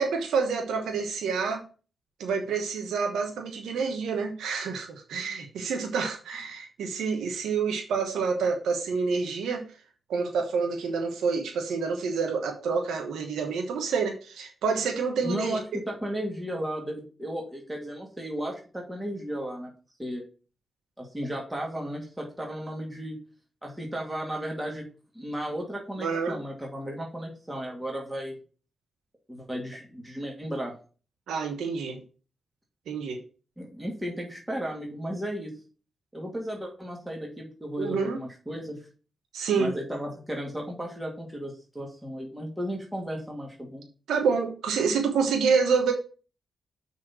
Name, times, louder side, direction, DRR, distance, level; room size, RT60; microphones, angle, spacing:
voice 1, 0.0-1.6 2.2-9.6 10.1-15.6 26.0-26.4 31.3-32.0 32.9-33.2 37.8-38.2 39.3-39.7 44.1-45.9, right 5 dB, 90° right, 3 dB, 1.1 m, -28 dB
voice 2, 15.2-19.7 20.0-20.2 21.0-23.2 23.6-24.8 25.1-28.4 29.3-30.7 33.6-35.6 36.1-38.8 39.5-43.8, equal, 15° right, -1 dB, 2.5 m, -34 dB
6.0 x 4.2 x 6.0 m, 0.37 s
cardioid pair, 50°, 0 cm